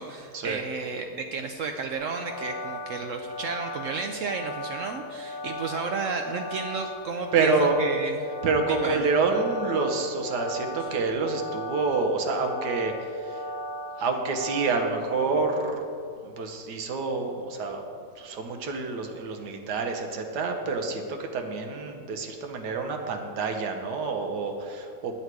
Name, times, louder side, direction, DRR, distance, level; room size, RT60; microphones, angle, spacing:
voice 1, 0.0-8.3 8.7-9.1 10.8-10.9, right 4 dB, 65° right, 4 dB, 0.8 m, -33 dB
sound 1, 1.9-14.9, left 1 dB, 30° left, 1.9 m, -37 dB
voice 2, 7.3-7.8 8.4-13.4 14.0-15.8 16.2-25.2, right 4 dB, 85° right, 4 dB, 1.5 m, -28 dB
8.8 x 8.1 x 4.7 m, 2.3 s
omnidirectional pair, 1.7 m